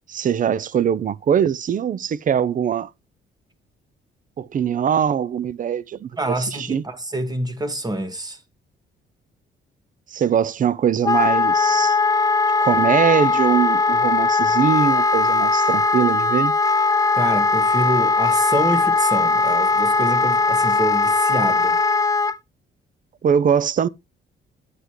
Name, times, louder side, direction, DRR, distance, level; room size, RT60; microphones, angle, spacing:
voice 1, 0.1-2.9 4.4-6.8 10.1-12.0 12.6-16.5 23.2-23.9, right 8 dB, 40° right, 0.5 m, -22 dB
voice 2, 6.2-8.4 17.1-21.8, right 1 dB, 20° right, 1.7 m, -26 dB
Wind instrument woodwind instrument, 11.0-22.4, left 3 dB, 20° left, 0.4 m, -19 dB
9.6 x 8.1 x 3.1 m
cardioid pair, 90°, 20 cm